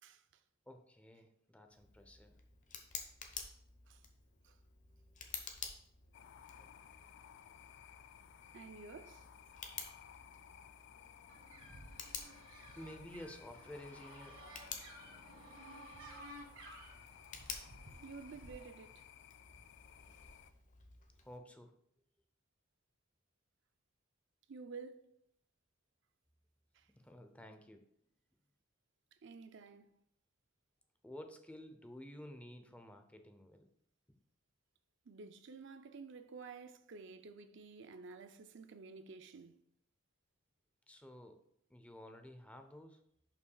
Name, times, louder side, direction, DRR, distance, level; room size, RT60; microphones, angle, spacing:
voice 1, 0.0-0.4 3.9-4.0 4.4-4.6 8.5-9.3 17.9-19.1 24.5-25.2 26.7-26.9 29.1-29.9 35.1-39.6, right 4 dB, 60° right, 0.5 m, -52 dB
voice 2, 0.7-2.4 12.8-14.4 21.2-21.7 27.0-27.9 31.0-33.7 34.1-34.2 40.9-41.4 41.7-43.0, left 1 dB, 5° left, 0.6 m, -52 dB
Tick, 1.7-21.4, left 6 dB, 40° left, 1.0 m, -52 dB
sound 1, 6.1-20.5, left 10 dB, 60° left, 0.3 m, -58 dB
sound 2, 11.3-18.7, right 1 dB, 80° right, 1.7 m, -55 dB
11.0 x 5.8 x 2.3 m
head